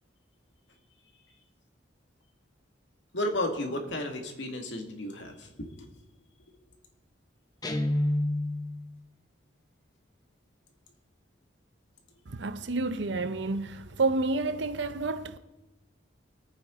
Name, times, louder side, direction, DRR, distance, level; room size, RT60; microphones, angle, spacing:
voice 1, 3.1-5.9 6.5-6.6, left 1 dB, 75° left, 2.0 m, -33 dB
Guitar, 7.6-8.8, left 1 dB, 20° left, 0.9 m, -28 dB
voice 2, 12.3-15.4, right 3 dB, 70° right, 0.8 m, -29 dB
24.0 x 8.9 x 3.8 m
head